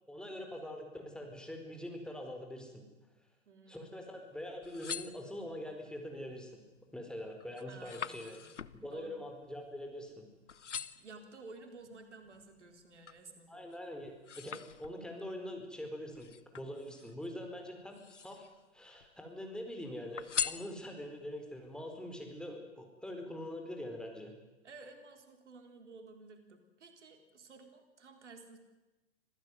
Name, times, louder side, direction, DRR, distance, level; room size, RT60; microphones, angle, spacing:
voice 1, 0.1-2.8 3.7-6.5 6.9-8.4 8.8-10.3 13.5-18.5 18.7-24.3, left 1 dB, ahead, 3 dB, 4.7 m, -44 dB
voice 2, 3.5-4.1 7.7-8.6 8.9-9.2 11.0-13.7 24.6-28.6, right 3 dB, 75° right, 6 dB, 4.0 m, -54 dB
sound 1, 4.5-5.8 6.3-6.7 7.1-10.2 10.5-11.2 11.8-13.3 13.7-15.3 16.1-17.3 17.8-18.6 19.0-19.7 20.2-21.2 21.7-21.8, left 7 dB, 85° left, 1.0 m, -43 dB
26.0 x 16.0 x 9.5 m, 1.1 s
figure-of-eight pair, 105°, 35 cm